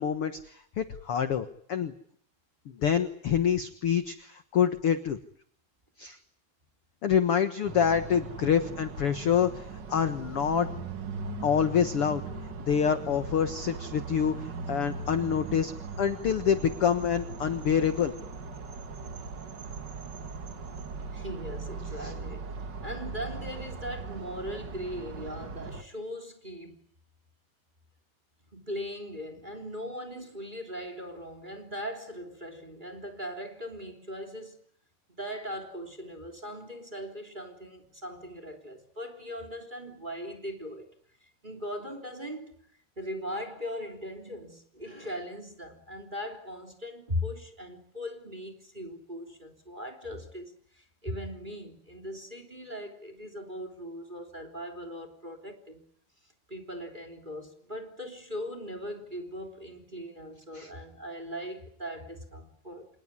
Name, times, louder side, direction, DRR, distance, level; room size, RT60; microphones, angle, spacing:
voice 1, 0.0-1.9 2.7-5.2 6.0-6.2 7.0-10.7 11.4-12.2 12.7-15.7 16.0-18.1 22.0-22.1 60.5-60.7, left 8 dB, 60° left, 1.5 m, -26 dB
sound 1, 7.6-25.8, right 4 dB, 45° right, 1.4 m, -39 dB
voice 2, 21.1-22.5 22.8-26.8 28.5-34.6 35.1-40.9 41.2-42.6 43.0-55.9 56.2-62.9, equal, 15° right, 3.0 m, -39 dB
27.5 x 19.5 x 9.9 m
omnidirectional pair, 4.4 m